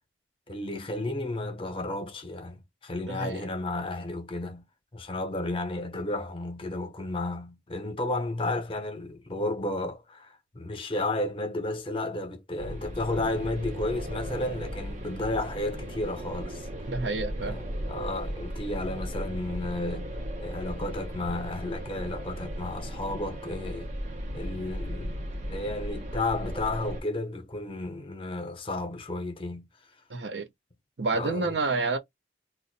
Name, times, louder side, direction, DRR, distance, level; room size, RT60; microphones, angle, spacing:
voice 1, 0.5-4.7 4.9-16.7 17.4-23.9 24.3-25.2 25.5-29.7 31.1-31.6, left 2 dB, 30° left, 0.7 m, -33 dB
voice 2, 3.1-3.5 16.9-17.5 30.1-30.5 31.0-32.0, right 3 dB, 80° right, 0.7 m, -29 dB
sound 1, 12.6-27.0, equal, 40° right, 0.7 m, -36 dB
2.6 x 2.2 x 3.9 m
head